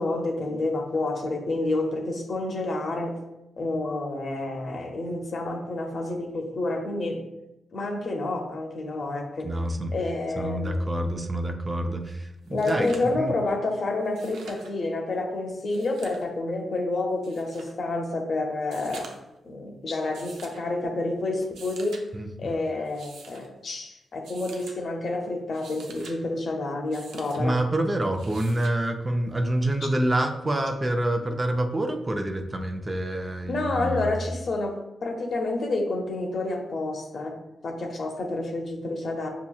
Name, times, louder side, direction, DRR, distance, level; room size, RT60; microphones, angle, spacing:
voice 1, 0.0-3.2 3.6-7.3 7.7-9.5 9.9-10.8 12.5-19.1 19.4-22.0 22.4-27.6 33.5-39.3, left 2 dB, 60° left, 2 dB, 0.8 m, -29 dB
voice 2, 9.4-9.9 10.4-13.3 22.1-22.3 27.4-34.1, right 1 dB, 25° right, 5 dB, 0.5 m, -27 dB
sound 1, 12.1-12.2 12.4-13.2 14.0-14.7 15.6-16.3 17.2-17.7 18.6-19.4 20.1-20.6 21.4-22.0 22.8-23.5 24.2-24.8 25.4-26.2 26.9-27.4 28.2-28.8 30.2-30.3, right 4 dB, 90° right, 0.5 m, -46 dB
5.3 x 2.9 x 2.3 m, 0.91 s
cardioid pair, 60°, 0 cm